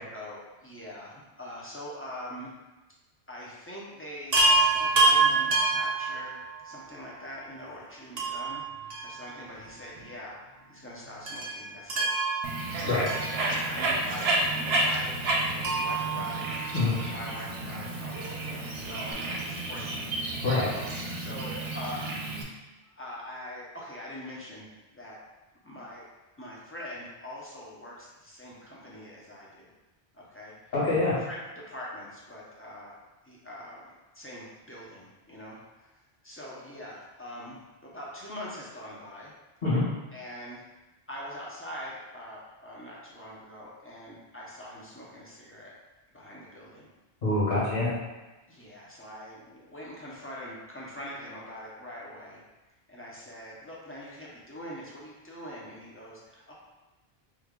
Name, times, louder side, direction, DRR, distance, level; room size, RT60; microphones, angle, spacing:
voice 1, 0.1-2.5 3.3-4.4 4.7-12.1 12.8-16.5 16.9-20.1 20.7-22.1 22.8-24.7 24.9-25.2 25.6-26.1 26.4-29.7 30.1-30.5 31.3-33.0 33.2-33.9 34.1-35.9 36.2-39.3 40.1-40.6 41.1-45.7 46.1-46.9 48.5-52.4 52.9-56.5, left 1 dB, 15° left, -6 dB, 0.5 m, -43 dB
Chime, 4.3-6.7 8.2-9.7 10.0-10.1 11.3-14.0 15.6-17.2 18.8-18.9 19.1-19.2, right 3 dB, 50° right, 0.6 m, -27 dB
Bird, 12.4-22.4, right 2 dB, 75° right, 0.8 m, -31 dB
voice 2, 30.7-31.2 39.6-39.8 47.2-47.9, left 2 dB, 65° left, -10 dB, 1.8 m, -25 dB
3.2 x 2.3 x 3.6 m, 1.1 s
omnidirectional pair, 1.0 m